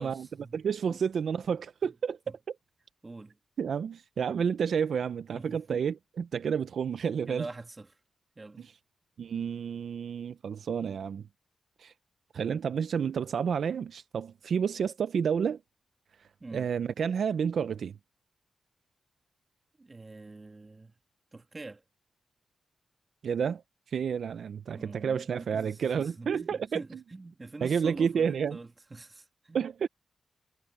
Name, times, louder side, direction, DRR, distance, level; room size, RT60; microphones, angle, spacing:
voice 1, 0.0-0.6 0.9-1.0 1.4-1.5 1.8-1.9 2.3-2.4 3.0-3.4 5.3-5.8 7.3-8.0 8.4-8.7 16.4-16.7 19.8-20.9 21.3-21.8 24.7-29.7, right 3 dB, 25° right, 1.8 m, -45 dB
voice 2, 0.5-2.2 3.6-7.5 8.6-8.7 9.2-11.3 11.8-11.9 12.3-15.6 16.2-18.0 23.2-23.6 23.9-26.8 27.6-28.6 29.5-29.9, right 7 dB, 65° right, 0.5 m, -30 dB
wide cardioid pair, 145°, 0 cm